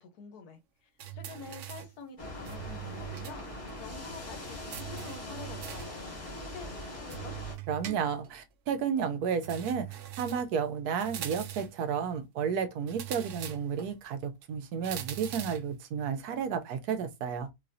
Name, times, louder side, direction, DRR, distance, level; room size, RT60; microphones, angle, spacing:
voice 1, 0.0-7.4, left 5 dB, 75° left, 1.4 m, -48 dB
sound 1, 1.0-2.0 2.5-3.4 3.7-3.8 4.7-6.0 7.1-8.4 9.4-10.5 11.0-11.8 12.9-13.9 14.8-15.7, right 12 dB, 65° right, 0.8 m, -42 dB
sound 2, 2.2-7.6, left 1 dB, 25° left, 1.0 m, -41 dB
voice 2, 7.7-17.5, right 7 dB, 85° right, 1.2 m, -32 dB
4.1 x 2.7 x 2.6 m
omnidirectional pair, 1.6 m